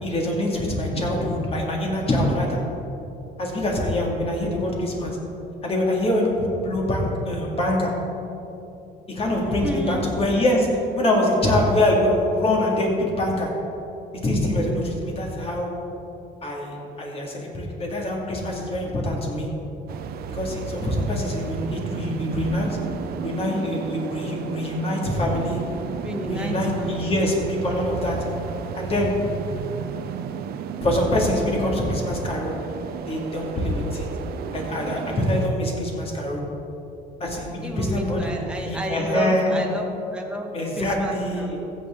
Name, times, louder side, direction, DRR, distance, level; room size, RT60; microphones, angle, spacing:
voice 1, 0.0-2.6 3.4-5.2 5.6-7.9 9.1-10.7 10.9-13.5 14.1-15.7 16.4-19.5 20.3-22.8 23.2-25.6 26.3-28.2 28.7-29.2 30.8-32.5 33.1-34.1 34.5-36.4 37.2-38.3 38.6-39.6 40.5-41.6, left 1 dB, 35° left, -1 dB, 2.3 m, -24 dB
voice 2, 9.4-10.2 26.0-27.2 37.6-41.7, right 1 dB, 5° right, 1 dB, 1.3 m, -31 dB
sound 1, 19.9-35.5, right 7 dB, 65° right, 0.6 m, -34 dB
15.0 x 7.0 x 3.8 m, 2.8 s
cardioid pair, 110°, 17 cm